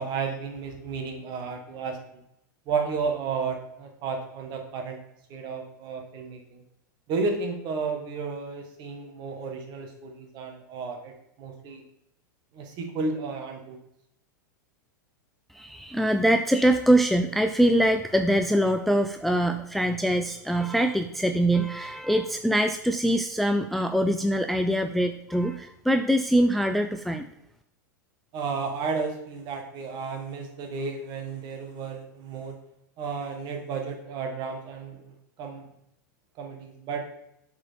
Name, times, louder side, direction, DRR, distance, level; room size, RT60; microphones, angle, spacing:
voice 1, 0.0-2.2 2.7-5.0 5.3-6.6 7.1-11.8 12.5-13.8 28.3-32.6 33.0-35.7 36.4-37.0, right 4 dB, 40° right, 3 dB, 1.6 m, -32 dB
voice 2, 15.5-27.3, right 1 dB, ahead, 6 dB, 0.4 m, -23 dB
7.3 x 4.5 x 4.3 m, 0.79 s
hypercardioid pair, 100°, 11 cm